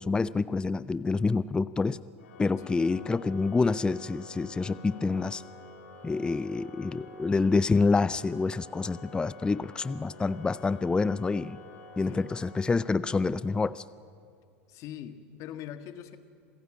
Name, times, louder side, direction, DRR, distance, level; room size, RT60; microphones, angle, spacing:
voice 1, 0.0-2.0 2.4-5.4 6.0-11.6 12.0-13.8, left 4 dB, 15° left, 18 dB, 0.5 m, -27 dB
Organ, 2.2-13.1, left 2 dB, 80° left, 3.1 m, -49 dB
voice 2, 14.7-16.2, left 10 dB, 50° left, 10 dB, 1.6 m, -42 dB
27.0 x 15.5 x 8.9 m, 2.3 s
hypercardioid pair, 100°, 7 cm